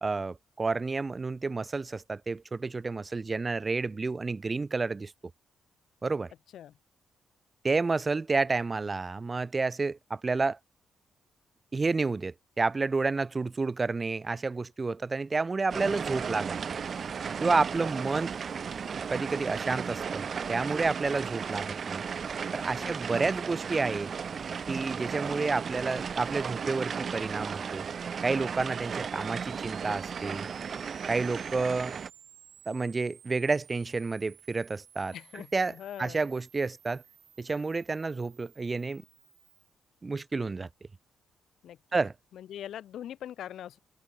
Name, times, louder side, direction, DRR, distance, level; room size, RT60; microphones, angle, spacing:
voice 1, 0.0-5.1 6.0-6.3 7.6-10.6 11.7-16.8 17.4-18.3 19.1-22.0 22.5-24.1 24.7-27.9 28.2-30.5 31.1-31.9 32.7-35.1 35.5-35.7 36.0-37.0 37.4-39.0 40.0-40.7 41.9-42.1, right 3 dB, 25° right, 1.4 m, -30 dB
sound 1, 15.7-32.1, right 6 dB, 45° right, 1.0 m, -35 dB
sound 2, 26.4-39.7, right 9 dB, 70° right, 7.0 m, -54 dB
voice 2, 35.1-36.2 41.6-41.8 42.3-43.8, left 10 dB, 75° left, 1.7 m, -42 dB
cardioid pair, 105°, 0 cm